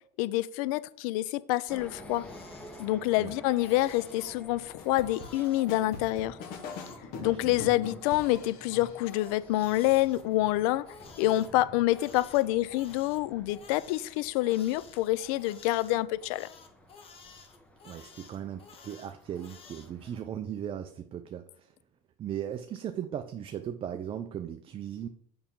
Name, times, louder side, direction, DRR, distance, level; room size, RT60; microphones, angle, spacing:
voice 1, 0.2-2.3 2.8-6.4 7.2-10.8 11.2-16.5, left 16 dB, 75° left, 0.4 m, -27 dB
sound 1, 1.7-20.2, left 1 dB, 5° left, 1.0 m, -52 dB
Crying sobbing, 1.8-3.2 3.5-4.3 4.8-7.0 7.6-11.5 11.9-19.9, left 5 dB, 30° left, 1.1 m, -52 dB
sound 2, 4.8-9.1, left 6 dB, 55° left, 1.3 m, -42 dB
voice 2, 7.2-7.7 17.8-21.7 22.2-25.1, right 9 dB, 30° right, 0.5 m, -38 dB
6.8 x 5.7 x 3.7 m
supercardioid pair, 125°, 18 cm